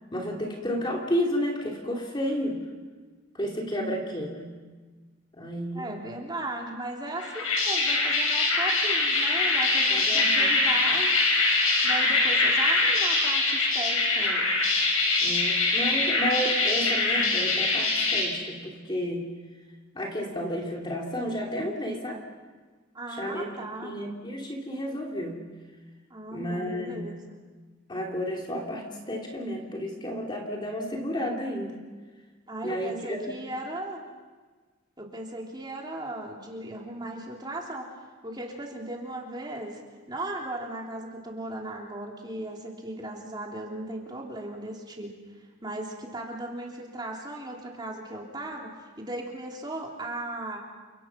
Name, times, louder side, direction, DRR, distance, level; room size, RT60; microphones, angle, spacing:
voice 1, 0.1-2.6 3.3-4.6 5.3-6.0 9.9-10.5 15.2-19.3 19.9-22.2 23.1-23.5 23.8-25.5 26.3-27.1 27.9-31.8 32.6-33.3, equal, 20° left, 0 dB, 2.9 m, -31 dB
voice 2, 3.7-4.1 5.7-11.1 11.8-14.5 22.9-23.9 26.1-27.2 32.5-34.0 35.0-37.9 38.2-39.8 40.1-45.2 45.6-48.7 49.0-50.6, right 1 dB, 20° right, -1 dB, 3.5 m, -37 dB
sound 1, 7.2-18.2, left 3 dB, 85° left, 6.7 m, -23 dB
29.5 x 26.0 x 6.0 m, 1.4 s
head